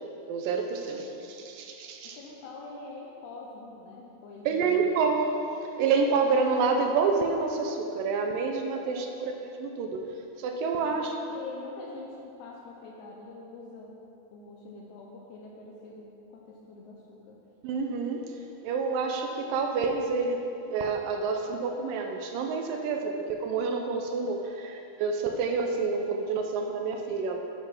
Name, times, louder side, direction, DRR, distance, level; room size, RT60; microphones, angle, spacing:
voice 1, 0.3-2.2 4.5-5.3 5.6-10.1 10.4-11.1 17.6-18.4 18.6-27.4, right 4 dB, 80° right, 3 dB, 2.1 m, -28 dB
voice 2, 0.8-1.3 2.0-4.9 8.8-9.2 10.8-11.1 11.3-13.9 14.3-17.4, left 3 dB, 85° left, -2 dB, 1.7 m, -45 dB
8.3 x 5.2 x 5.8 m, 2.9 s
omnidirectional pair, 4.3 m